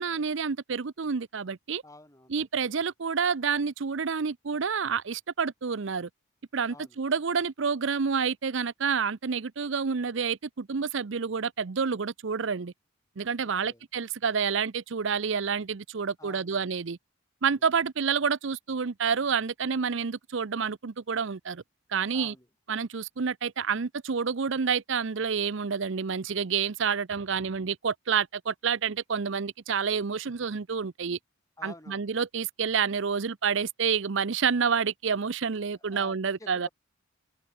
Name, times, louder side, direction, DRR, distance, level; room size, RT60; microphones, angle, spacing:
voice 1, 0.0-1.8 2.3-6.1 6.5-12.7 13.2-17.0 17.4-21.6 21.9-22.3 22.7-31.2 31.6-36.7, right 6 dB, 60° right, 0.6 m, -29 dB
voice 2, 1.8-2.4 6.7-7.0 13.4-13.8 16.2-16.7 17.5-17.7 22.1-22.5 31.6-32.1 35.7-36.7, left 2 dB, 15° left, 7.2 m, -50 dB
head